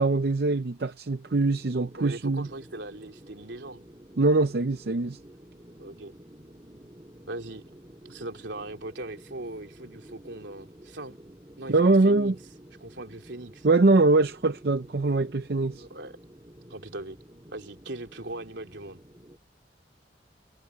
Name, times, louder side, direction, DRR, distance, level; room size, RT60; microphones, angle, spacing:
voice 1, 0.0-2.5 4.2-5.2 11.7-12.3 13.6-15.8, right 3 dB, 60° right, 0.6 m, -23 dB
sound 1, 1.2-19.4, equal, 20° right, 3.4 m, -51 dB
voice 2, 2.0-3.8 5.8-6.1 7.3-7.6 8.0-11.2 11.6-12.4 12.8-13.7 15.7-16.2 16.7-17.2 17.5-19.0, right 2 dB, 85° right, 3.1 m, -39 dB
head